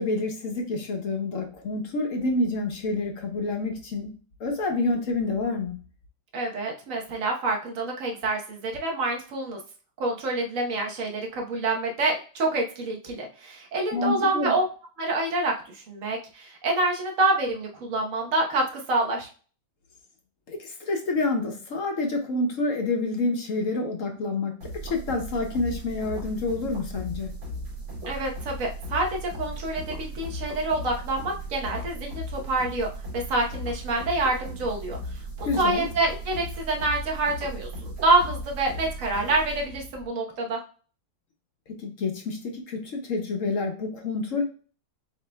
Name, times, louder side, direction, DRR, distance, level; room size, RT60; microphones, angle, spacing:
voice 1, 0.0-4.1 4.4-5.8 13.9-14.5 20.5-27.3 35.4-35.9 41.8-44.4, left 3 dB, 55° left, 3 dB, 0.9 m, -28 dB
voice 2, 6.3-9.6 10.0-14.6 15.0-19.3 28.1-32.9 33.1-35.0 35.6-40.6, right 2 dB, 50° right, 0 dB, 1.3 m, -27 dB
sound 1, 24.6-40.1, right 1 dB, 85° right, 2.7 m, -37 dB
7.7 x 2.9 x 2.2 m, 0.39 s
omnidirectional pair, 2.1 m